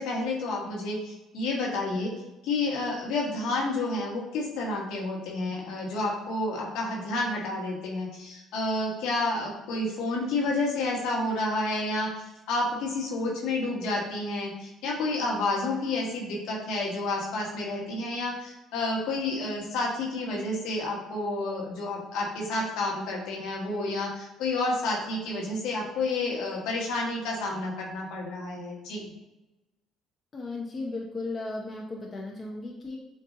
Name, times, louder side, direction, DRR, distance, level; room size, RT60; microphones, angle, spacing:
voice 1, 0.0-2.1 2.4-29.1, left 2 dB, 70° left, -2 dB, 1.3 m, -30 dB
voice 2, 30.3-33.0, left 2 dB, 35° left, -1 dB, 0.7 m, -35 dB
7.3 x 2.6 x 2.7 m, 0.99 s
hypercardioid pair, 55°, 0 cm